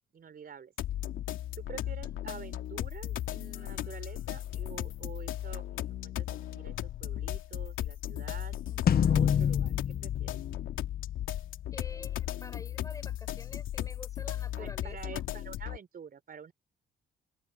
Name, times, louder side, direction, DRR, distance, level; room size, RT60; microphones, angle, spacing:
voice 1, 0.1-0.7 1.5-6.3 6.5-8.6 9.0-10.3 14.6-16.5, right 7 dB, 50° right, 4.6 m, -47 dB
sound 1, 0.8-15.8, left 12 dB, 85° left, 2.8 m, -36 dB
voice 2, 1.8-2.2 8.7-9.0 11.7-15.2, left 2 dB, 15° left, 7.5 m, -49 dB
sound 2, 8.9-11.4, left 8 dB, 50° left, 0.9 m, -27 dB
open air
cardioid pair, 90°, 20 cm